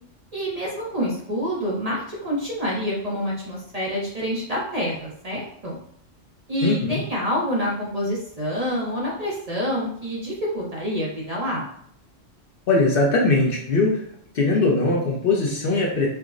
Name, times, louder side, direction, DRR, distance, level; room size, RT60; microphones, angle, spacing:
voice 1, 0.3-5.8 6.5-11.6, equal, 40° right, -5 dB, 0.6 m, -27 dB
voice 2, 6.6-7.0 12.7-14.0 14.3-16.1, left 2 dB, 60° left, -2 dB, 0.7 m, -20 dB
4.5 x 2.0 x 2.4 m, 0.66 s
omnidirectional pair, 1.2 m